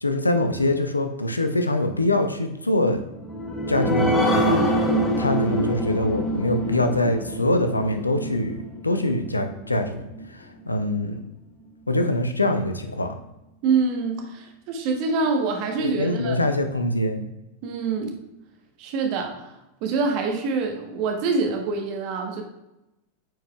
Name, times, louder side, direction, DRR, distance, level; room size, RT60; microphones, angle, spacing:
voice 1, 0.0-3.0 3.7-4.7 5.2-11.2 11.9-13.1 15.8-17.2, left 1 dB, 80° left, 7 dB, 0.6 m, -24 dB
sound 1, 3.1-10.2 10.7-10.8 11.1-11.2, equal, 5° left, 0.9 m, -25 dB
voice 2, 13.6-16.4 17.6-18.2 18.8-22.4, right 4 dB, 45° right, 3 dB, 1.1 m, -25 dB
9.0 x 4.6 x 2.3 m, 0.92 s
figure-of-eight pair, 90°, 0 cm